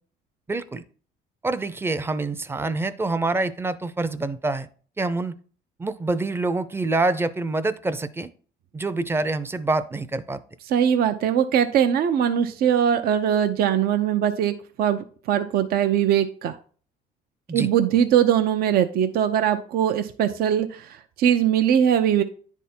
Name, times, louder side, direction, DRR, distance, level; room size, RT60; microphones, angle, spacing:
voice 1, 0.5-0.8 1.4-4.7 5.0-5.3 5.8-8.3 8.7-10.4 17.5-17.7, right 2 dB, 15° right, 13 dB, 0.5 m, -26 dB
voice 2, 10.7-16.6 17.5-22.2, right 9 dB, 65° right, 8 dB, 0.6 m, -21 dB
10.0 x 3.6 x 4.3 m, 0.43 s
cardioid pair, 110°, 17 cm